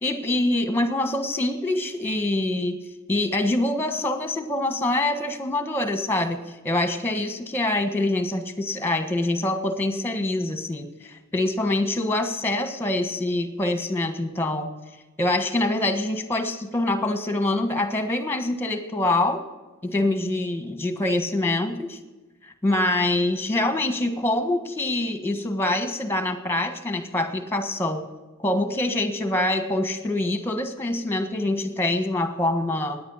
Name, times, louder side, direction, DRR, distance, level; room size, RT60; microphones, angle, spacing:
voice 1, 0.0-2.8 3.1-14.7 15.2-19.4 19.8-22.0 22.4-28.0 28.4-33.0, left 2 dB, 10° left, 6 dB, 1.4 m, -25 dB
17.5 x 10.0 x 5.7 m, 1.1 s
head